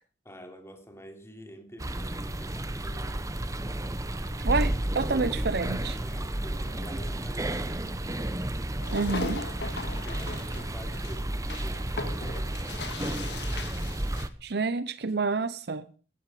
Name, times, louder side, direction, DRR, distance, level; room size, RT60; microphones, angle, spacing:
voice 1, 0.2-3.3 6.0-8.2 9.7-13.1, equal, 15° left, 3.0 m, -47 dB
sound 1, 1.8-14.3, right 1 dB, 20° right, 1.0 m, -32 dB
voice 2, 4.4-6.0 8.9-9.4 14.4-15.8, right 4 dB, 65° right, 0.7 m, -28 dB
sound 2, 8.8-14.3, left 3 dB, 70° left, 1.9 m, -38 dB
17.0 x 13.5 x 4.9 m
head